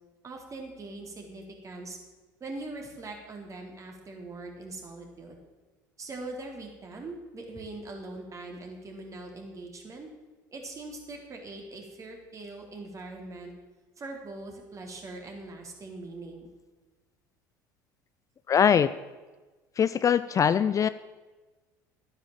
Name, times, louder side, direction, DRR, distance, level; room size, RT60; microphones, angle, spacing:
voice 1, 0.2-2.0 2.4-5.4 6.0-10.1 10.5-13.5 14.0-16.5, right 2 dB, 30° right, 1 dB, 4.1 m, -41 dB
voice 2, 18.5-18.9 19.8-20.9, left 8 dB, 35° left, 14 dB, 0.5 m, -22 dB
12.5 x 10.0 x 7.6 m, 1.3 s
hypercardioid pair, 70°, 10 cm